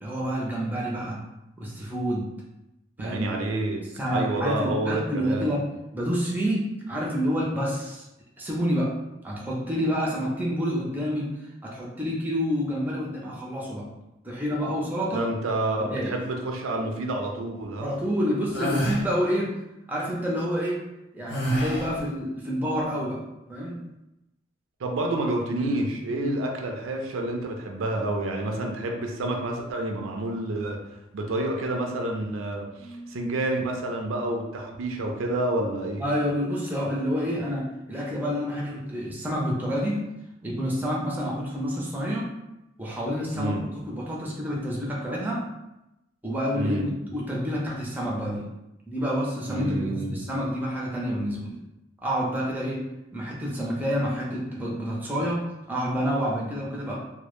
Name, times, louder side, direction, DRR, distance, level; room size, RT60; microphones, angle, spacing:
voice 1, 0.0-1.2 1.6-2.3 3.0-3.3 4.0-5.6 5.9-8.1 8.4-8.9 9.2-11.3 11.6-13.9 14.2-15.3 15.9-16.1 17.8-19.5 19.9-20.8 21.1-23.2 23.5-23.9 26.2-26.4 32.8-33.2 36.0-40.1 40.4-42.3 42.8-43.6 43.9-45.5 46.2-48.5 48.9-51.6 52.0-52.9 53.1-57.0, equal, 10° right, -3 dB, 0.4 m, -28 dB
voice 2, 3.0-5.6 15.1-17.9 24.8-30.8 31.1-36.1 43.4-43.7 46.6-46.9 49.5-50.3, right 2 dB, 75° right, 2 dB, 0.4 m, -29 dB
sound 1, 18.5-19.0 21.3-22.0, right 1 dB, 65° left, 0.5 m, -27 dB
2.1 x 2.0 x 2.9 m, 0.91 s
head